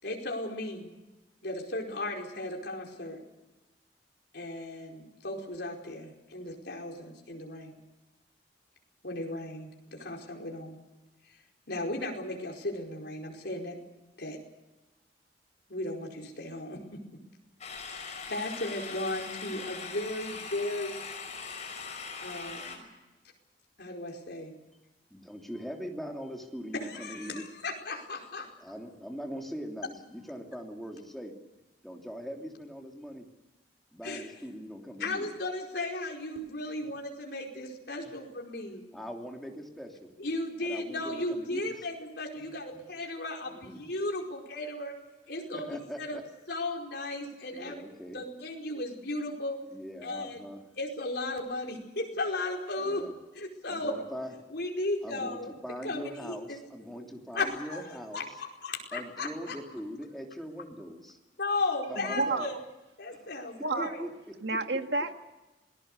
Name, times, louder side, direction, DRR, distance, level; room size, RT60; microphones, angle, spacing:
voice 1, 0.0-0.9 1.4-3.2 4.3-7.8 9.0-10.8 11.7-13.8 14.2-14.4 15.7-16.8 17.9-21.0 22.2-22.8 23.8-24.5 26.8-28.5 34.0-34.3 35.0-38.9 40.2-44.9 45.3-46.2 46.5-47.8 48.1-49.6 50.0-50.4 50.8-53.1 53.3-54.0 54.5-55.5 55.8-56.6 56.9-57.1 57.3-59.5 61.4-62.6 63.0-64.0, left 2 dB, 65° left, 0 dB, 4.9 m, -35 dB
sound 1, 17.6-22.8, left 5 dB, 40° left, 5.5 m, -41 dB
voice 2, 25.1-27.4 28.6-31.3 31.8-33.3 33.9-35.3 36.7-36.9 38.0-38.2 38.9-40.1 40.6-41.6 42.4-42.8 43.4-43.8 45.5-46.2 47.5-48.2 49.7-50.6 52.8-53.1 53.7-54.3 55.0-58.3 58.9-61.2 61.9-62.5 63.8-64.6, equal, ahead, 1 dB, 3.1 m, -41 dB
voice 3, 62.0-62.5 63.6-64.1 64.4-65.2, right 3 dB, 70° right, 6 dB, 1.9 m, -30 dB
27.5 x 19.5 x 6.8 m, 1.1 s
head